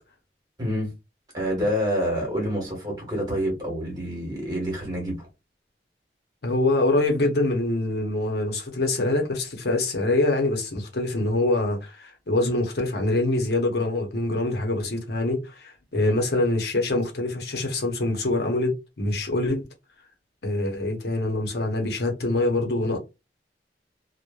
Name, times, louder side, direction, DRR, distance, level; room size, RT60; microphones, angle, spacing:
voice 1, 0.6-0.9 1.3-5.3 15.9-16.2, equal, 25° right, 1.2 m, -27 dB
voice 2, 6.4-19.6 20.4-23.0, left 2 dB, 65° left, 0.7 m, -25 dB
3.0 x 2.1 x 2.2 m
head